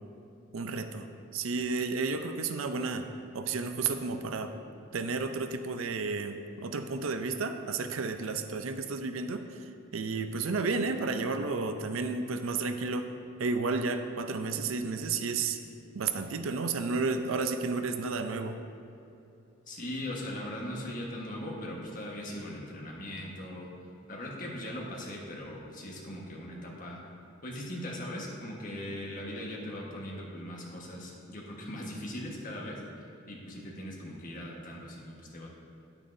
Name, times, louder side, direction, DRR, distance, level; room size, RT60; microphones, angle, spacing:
voice 1, 0.5-1.1 1.3-3.1 3.3-4.5 4.9-9.6 9.9-13.1 13.4-15.6 15.9-18.6, right 4 dB, 80° right, 8 dB, 0.5 m, -32 dB
voice 2, 19.7-27.0 27.4-35.5, left 1 dB, 40° left, -3 dB, 1.4 m, -40 dB
10.0 x 8.9 x 2.7 m, 2.7 s
head